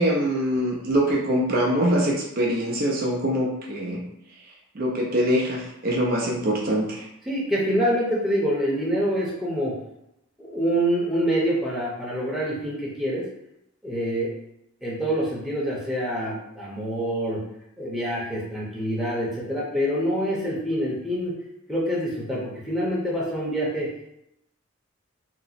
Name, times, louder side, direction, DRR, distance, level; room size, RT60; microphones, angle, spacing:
voice 1, 0.0-4.0 4.7-7.1, equal, 45° right, -2 dB, 0.5 m, -23 dB
voice 2, 7.2-9.8 10.4-13.2 13.8-14.3 14.8-17.4 17.8-21.3 21.7-23.9, equal, ahead, -7 dB, 0.7 m, -26 dB
2.8 x 2.0 x 4.0 m, 0.82 s
head